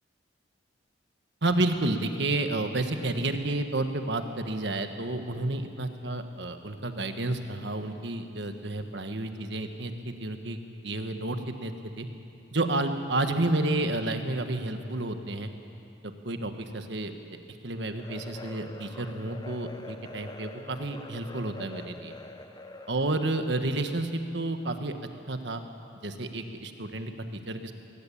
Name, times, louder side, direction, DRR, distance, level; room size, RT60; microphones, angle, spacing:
voice 1, 1.4-10.6 10.8-12.1 12.5-15.5 16.0-17.1 17.6-22.1 22.9-25.0 25.3-25.6 26.0-27.7, right 2 dB, 65° right, 7 dB, 1.5 m, -30 dB
sound 1, 18.0-23.4, left 2 dB, 20° left, 0.9 m, -45 dB
21.5 x 18.5 x 8.7 m, 2.6 s
head